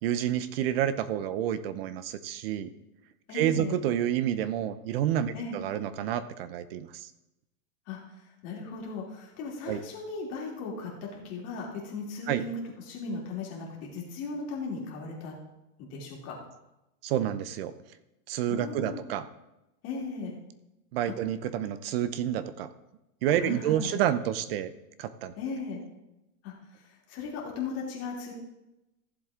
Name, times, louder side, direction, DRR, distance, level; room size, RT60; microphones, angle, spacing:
voice 1, 0.0-2.7 3.3-7.1 9.7-9.8 12.3-12.4 17.0-17.7 18.3-19.3 20.9-22.7 23.2-24.7 25.0-25.3, right 10 dB, 40° right, 14 dB, 0.6 m, -29 dB
voice 2, 3.3-3.8 5.3-5.6 7.9-8.0 8.4-12.6 12.8-15.3 15.8-16.4 18.5-19.1 19.8-20.3 23.4-23.9 25.4-25.8 26.4-26.5 27.1-28.3, left 4 dB, 35° left, -2 dB, 2.9 m, -37 dB
15.0 x 7.5 x 3.6 m, 0.93 s
supercardioid pair, 155°, 44 cm